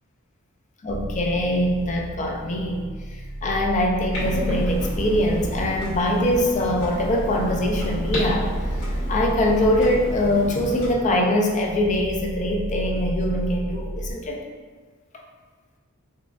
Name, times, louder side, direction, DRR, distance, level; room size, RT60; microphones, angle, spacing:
voice 1, 0.8-8.5 9.1-14.4, left 1 dB, 35° left, 1 dB, 0.4 m, -23 dB
sound 1, 0.9-14.1, right 1 dB, 45° right, 0.5 m, -32 dB
Clock, 4.1-10.9, equal, 55° left, 1.3 m, -32 dB
3.9 x 2.4 x 2.4 m, 1.5 s
head